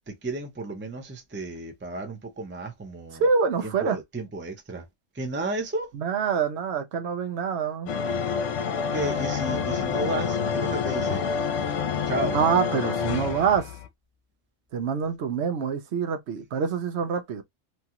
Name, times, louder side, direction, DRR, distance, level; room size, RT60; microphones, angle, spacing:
voice 1, 0.1-3.3 3.6-4.9 5.1-5.9 8.9-11.3 12.1-12.4, right 2 dB, 20° right, 0.3 m, -33 dB
voice 2, 3.2-4.0 6.0-7.9 12.3-13.8 14.7-17.4, right 6 dB, 65° right, 0.9 m, -26 dB
sound 1, 7.9-13.9, left 6 dB, 80° left, 0.9 m, -27 dB
2.9 x 2.4 x 2.7 m
omnidirectional pair, 1.3 m